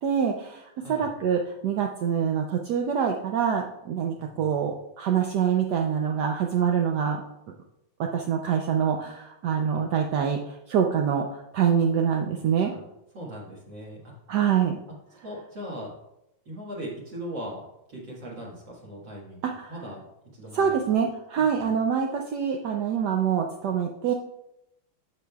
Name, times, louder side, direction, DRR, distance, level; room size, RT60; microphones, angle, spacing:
voice 1, 0.0-7.2 8.1-12.7 14.3-14.8 19.4-19.7 20.5-24.1, right 7 dB, 75° right, 2 dB, 0.9 m, -25 dB
voice 2, 0.8-1.1 4.2-4.5 9.7-9.8 12.7-12.8 13.1-14.2 15.2-15.9 16.5-17.6 17.9-20.0 20.3-20.8 21.4-21.5, equal, 60° right, -5 dB, 2.3 m, -39 dB
15.0 x 5.2 x 2.3 m, 0.86 s
omnidirectional pair, 2.4 m